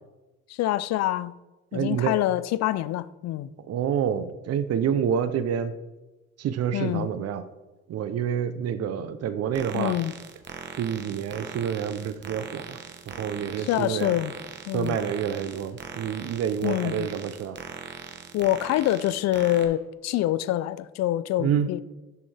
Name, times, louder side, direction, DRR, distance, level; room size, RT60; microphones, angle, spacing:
voice 1, 0.5-1.3 1.7-3.5 6.7-7.1 9.7-10.1 13.7-14.3 14.7-15.0 16.6-17.1 18.3-21.8, left 14 dB, 60° left, 0.4 m, -26 dB
voice 2, 1.7-2.1 3.7-5.8 6.4-7.4 7.9-10.0 10.8-12.8 13.1-14.2 14.7-17.6 21.4-21.7, right 8 dB, 55° right, 0.7 m, -28 dB
sound 1, 9.5-19.7, right 6 dB, 35° right, 1.0 m, -40 dB
11.0 x 6.3 x 3.4 m
cardioid pair, 90°, 30 cm